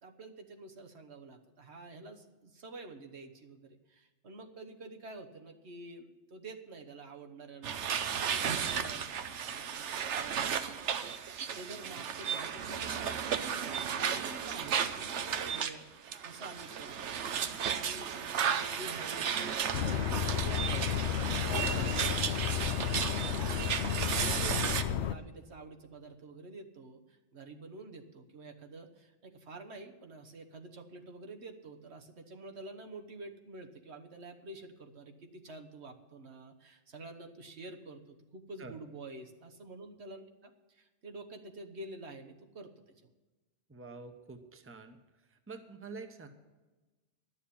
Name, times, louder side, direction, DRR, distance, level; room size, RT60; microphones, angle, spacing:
voice 1, 0.0-11.1 11.5-23.2 24.1-43.1, right 2 dB, 70° right, 4 dB, 1.4 m, -49 dB
sound 1, 7.6-15.7 16.1-24.8, right 7 dB, 90° right, 1.1 m, -34 dB
sound 2, 19.7-25.1, left 10 dB, 80° left, 0.9 m, -32 dB
voice 2, 21.4-21.9 38.6-38.8 43.7-45.0 45.3-46.3, right 3 dB, 15° right, 7 dB, 0.9 m, -46 dB
11.5 x 7.2 x 8.5 m, 1.2 s
omnidirectional pair, 1.2 m